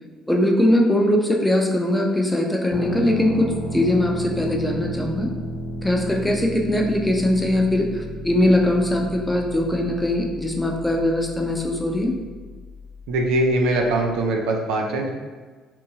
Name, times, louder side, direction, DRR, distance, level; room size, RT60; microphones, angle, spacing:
voice 1, 0.3-5.3 5.8-12.1, left 1 dB, 10° left, 0 dB, 0.5 m, -21 dB
sound 1, 2.7-14.3, equal, 50° left, 0.6 m, -33 dB
voice 2, 13.1-15.1, right 1 dB, 75° right, 1 dB, 0.3 m, -22 dB
2.8 x 2.2 x 2.6 m, 1.4 s
hypercardioid pair, 60°, 0 cm